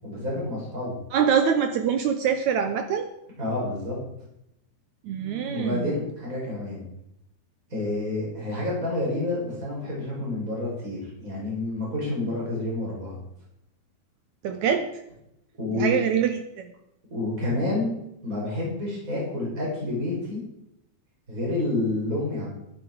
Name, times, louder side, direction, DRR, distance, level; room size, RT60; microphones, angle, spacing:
voice 1, 0.0-1.0 3.4-4.0 5.5-6.8 7.7-13.2 15.6-16.0 17.1-17.9 18.2-20.4 21.3-22.5, left 2 dB, 20° right, -5 dB, 6.0 m, -29 dB
voice 2, 1.1-3.1 5.0-5.8 14.4-14.9 15.7-16.7, right 7 dB, 80° right, 7 dB, 1.7 m, -24 dB
13.0 x 10.0 x 4.7 m, 0.82 s
omnidirectional pair, 4.3 m